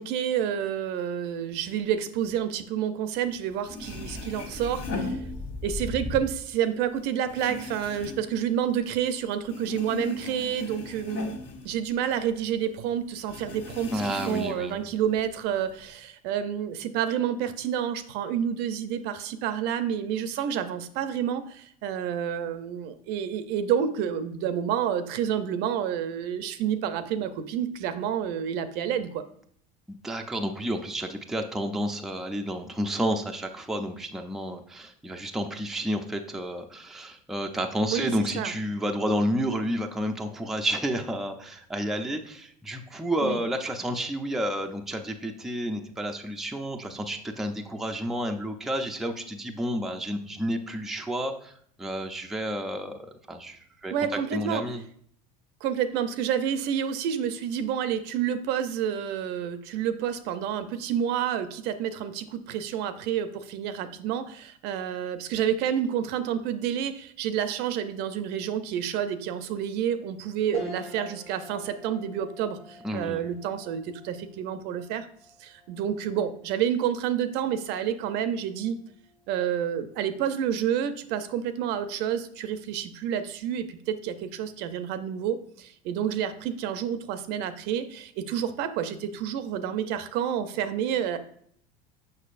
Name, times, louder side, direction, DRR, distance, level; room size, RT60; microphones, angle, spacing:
voice 1, 0.0-5.2 5.6-11.2 11.6-29.2 37.9-38.5 43.2-43.4 53.9-54.6 55.6-75.1 75.4-78.8 79.3-91.2, right 9 dB, 60° right, 11 dB, 0.6 m, -29 dB
sound 1, 3.4-3.5 3.7-5.9 6.2-9.2 9.4-12.4 12.7-12.8 13.3-14.8 15.1-15.9, left 2 dB, 55° left, 1.3 m, -37 dB
sound 2, 3.4-6.3, left 2 dB, 15° left, 0.9 m, -37 dB
voice 2, 13.9-14.8 29.9-51.5 51.8-54.8 72.8-73.2, equal, ahead, 3 dB, 0.4 m, -30 dB
sound 3, 70.5-80.1 80.6-80.7 82.0-82.5, left 2 dB, 75° left, 1.3 m, -49 dB
6.5 x 5.8 x 2.5 m, 0.64 s
supercardioid pair, 125°, 20 cm